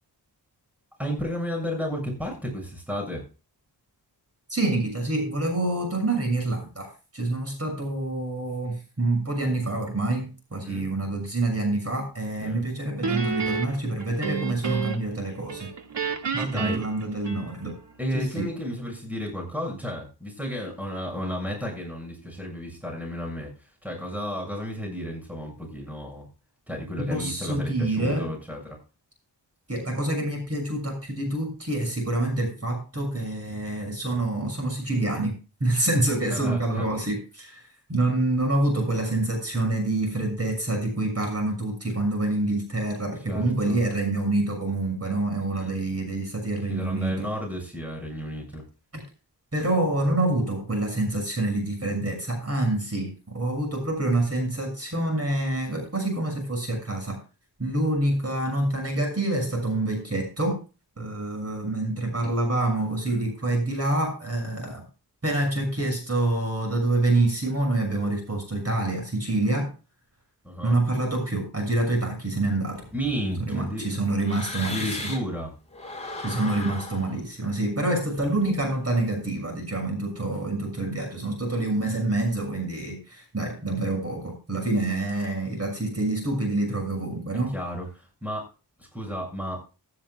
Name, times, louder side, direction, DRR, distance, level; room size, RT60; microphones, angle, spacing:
voice 1, 1.0-3.2 10.6-10.9 12.4-12.7 16.4-16.8 18.0-23.5 23.8-26.3 26.7-28.8 36.3-36.8 43.3-43.8 45.5-45.7 46.7-48.6 70.4-70.8 72.9-73.9 74.6-75.5 87.3-88.5 88.8-89.6, equal, 5° right, 0 dB, 6.9 m, -32 dB
voice 2, 4.5-15.7 16.3-17.8 18.1-18.5 27.0-28.3 29.7-35.3 35.6-47.3 48.9-49.0 49.5-57.2 57.6-60.6 61.0-64.8 65.2-69.7 70.6-72.9 73.4-75.1 76.2-87.5, right 2 dB, 35° right, 2 dB, 6.7 m, -27 dB
Guitar, 13.0-15.2 15.5-17.8, right 5 dB, 75° right, 2.1 m, -30 dB
sound 1, 72.7-75.4 75.7-78.8, left 2 dB, 15° left, 4.5 m, -38 dB
16.0 x 13.5 x 2.4 m, 0.32 s
wide cardioid pair, 100°, 42 cm